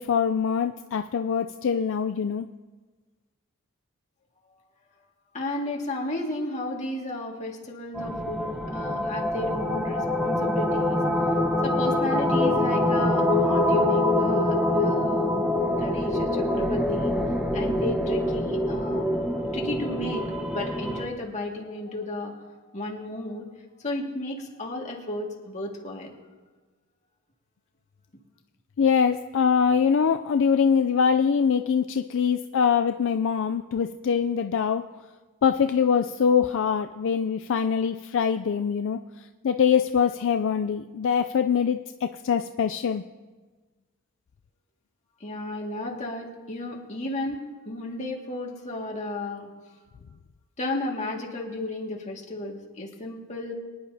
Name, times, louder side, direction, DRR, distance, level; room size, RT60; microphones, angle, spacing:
voice 1, 0.0-2.5 28.8-34.8 35.4-39.0 39.4-43.0, left 6 dB, 60° left, 7 dB, 0.4 m, -23 dB
voice 2, 5.3-11.0 11.3-17.2 17.5-19.1 19.5-22.4 22.7-23.5 23.8-26.2 45.2-49.5 50.6-53.5, left 2 dB, 35° left, -1 dB, 2.0 m, -33 dB
sound 1, 7.9-21.1, left 1 dB, 5° right, 0.9 m, -25 dB
24.0 x 10.5 x 2.8 m, 1.3 s
head